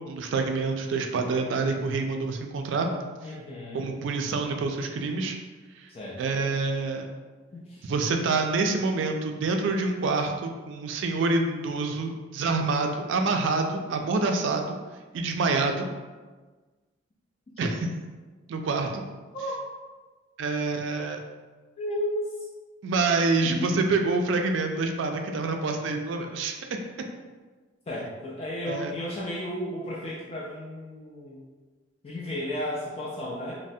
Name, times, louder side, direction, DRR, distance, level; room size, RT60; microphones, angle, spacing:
voice 1, 0.1-2.9 3.7-5.4 5.8-5.9 6.2-7.1 7.8-14.8 15.1-15.9 17.6-17.9 18.5-19.0 20.4-21.2 22.8-26.5 28.7-28.9, right 3 dB, 70° right, 4 dB, 0.3 m, -27 dB
voice 2, 3.2-3.9 5.9-6.4 7.5-7.9 8.6-8.7 19.3-19.6 21.8-22.3 23.4-23.8 27.9-31.4 32.0-33.6, left 1 dB, 30° left, -6 dB, 0.3 m, -34 dB
3.1 x 2.0 x 2.6 m, 1.3 s
head